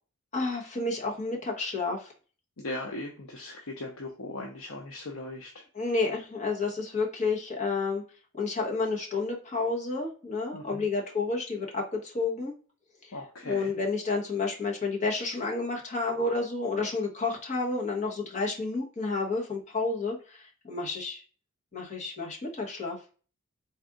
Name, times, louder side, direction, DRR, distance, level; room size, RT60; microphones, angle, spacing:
voice 1, 0.3-2.1 5.7-8.0 8.3-12.5 13.0-13.1 13.4-21.2 21.7-23.0, left 3 dB, 35° left, -1 dB, 1.2 m, -30 dB
voice 2, 2.6-5.6 10.5-10.8 13.1-13.7, left 2 dB, 80° left, 1 dB, 0.7 m, -39 dB
4.1 x 2.6 x 3.6 m, 0.38 s
head